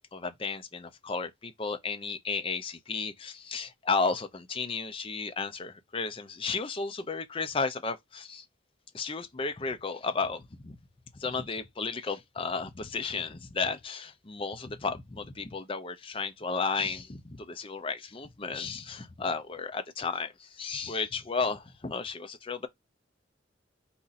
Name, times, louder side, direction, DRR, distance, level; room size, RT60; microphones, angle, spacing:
voice 1, 0.1-8.4 8.9-10.8 11.1-22.7, left 4 dB, 30° left, 0.5 m, -33 dB
4.2 x 2.6 x 4.0 m
head